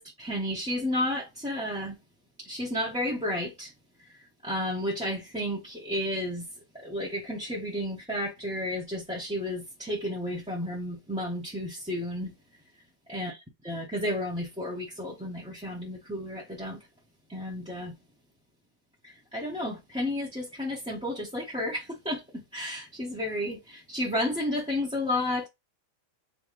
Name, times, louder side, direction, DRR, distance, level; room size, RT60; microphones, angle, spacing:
voice 1, 0.0-2.0 2.4-3.7 4.4-6.5 6.8-12.3 13.1-13.4 13.6-16.8 17.3-17.9 19.3-25.5, left 1 dB, 5° right, 1.2 m, -32 dB
3.9 x 3.1 x 3.2 m
omnidirectional pair, 1.4 m